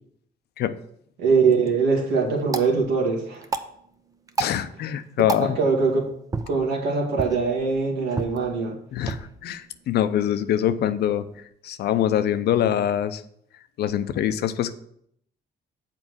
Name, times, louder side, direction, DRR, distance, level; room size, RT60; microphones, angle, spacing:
voice 1, 1.2-3.4 5.4-6.1 6.5-8.8, right 4 dB, 90° right, 0 dB, 2.2 m, -22 dB
sound 1, 1.3-11.4, right 3 dB, 20° right, 0.7 m, -36 dB
voice 2, 4.4-5.6 8.9-11.3 11.6-13.2 13.8-14.7, left 10 dB, 75° left, 12 dB, 0.6 m, -24 dB
7.4 x 4.7 x 6.3 m, 0.69 s
cardioid pair, 95°, 17 cm